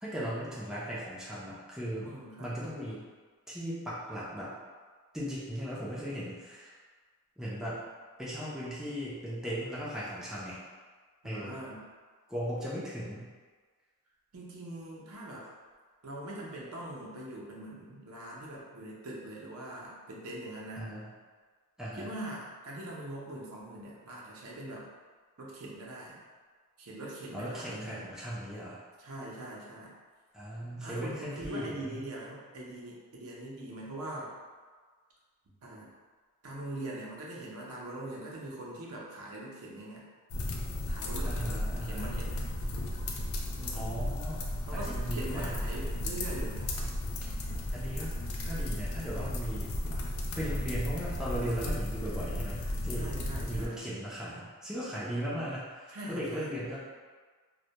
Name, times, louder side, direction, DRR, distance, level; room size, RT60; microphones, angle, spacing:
voice 1, 0.0-2.1 2.4-3.0 3.5-4.5 5.1-6.7 7.4-7.8 8.2-10.6 11.2-11.5 12.3-13.3 20.8-21.1 21.8-22.1 27.3-28.8 30.3-32.0 41.3-42.1 43.7-44.4 44.7-45.5 47.7-48.1 48.5-49.8 50.4-53.1 53.5-56.8, equal, 5° right, -9 dB, 0.4 m, -37 dB
voice 2, 2.0-2.6 11.2-11.8 14.3-15.5 16.0-20.9 21.9-24.9 25.4-26.2 26.8-28.0 29.0-29.9 30.8-34.3 35.6-35.9 36.4-40.1 40.9-42.5 43.6-44.0 44.7-46.6 52.9-53.9 55.9-56.6, right 1 dB, 70° right, -4 dB, 0.5 m, -42 dB
sound 1, 40.3-53.7, left 1 dB, 65° left, 0.3 m, -34 dB
2.1 x 2.1 x 2.7 m, 1.5 s
head